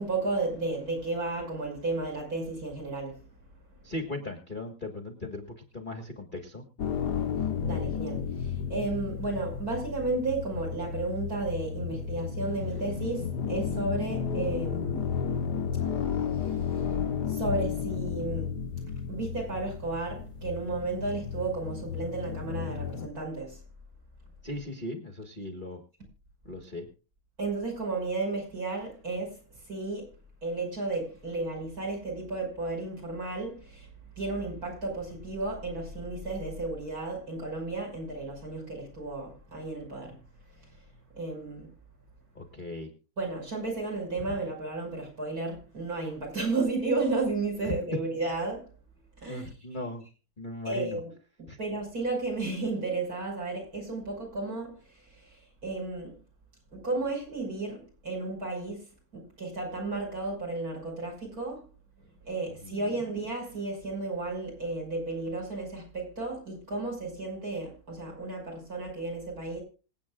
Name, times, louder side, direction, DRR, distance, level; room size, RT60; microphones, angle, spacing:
voice 1, 0.0-3.3 7.4-15.2 16.3-17.0 17.3-18.6 19.1-23.6 27.4-30.1 30.4-33.9 34.2-40.2 40.5-40.8 41.1-41.7 43.2-48.7 49.2-49.5 50.6-51.1 51.4-56.2 56.7-61.6 62.2-69.6, right 3 dB, 45° right, 6.3 m, -33 dB
voice 2, 3.8-6.6 24.4-25.8 26.4-26.9 42.3-42.9 44.3-44.4 49.3-50.0 50.4-51.0 51.5-51.6 62.6-63.0, left 2 dB, 25° left, 1.7 m, -38 dB
sound 1, 6.8-23.1, left 7 dB, 55° left, 1.5 m, -33 dB
26.5 x 8.8 x 2.4 m
omnidirectional pair, 2.3 m